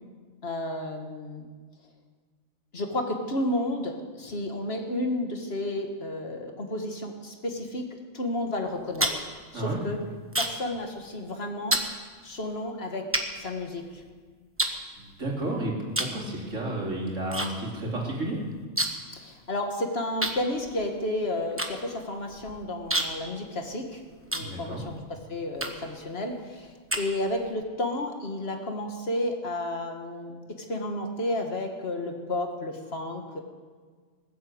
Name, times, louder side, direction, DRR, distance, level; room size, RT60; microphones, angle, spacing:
voice 1, 0.4-1.5 2.7-7.9 8.1-9.2 9.5-10.0 10.4-11.8 12.2-14.0 19.1-24.0 24.3-24.8 25.3-30.3 30.7-33.4, left 1 dB, 55° left, 3 dB, 1.9 m, -32 dB
sound 1, 8.7-10.7 11.0-11.3 11.7-11.9 12.6-12.7 13.1-14.1 14.6-15.4 15.9-16.2 16.5-17.5 17.8-17.9 18.1-19.1 19.4-19.5 20.2-25.0 25.6-26.0 26.5-27.5, right 1 dB, 10° right, 1.1 m, -30 dB
voice 2, 15.0-18.4 24.4-24.8, right 1 dB, 85° right, -2 dB, 3.4 m, -32 dB
19.5 x 8.3 x 8.0 m, 1.5 s
omnidirectional pair, 1.3 m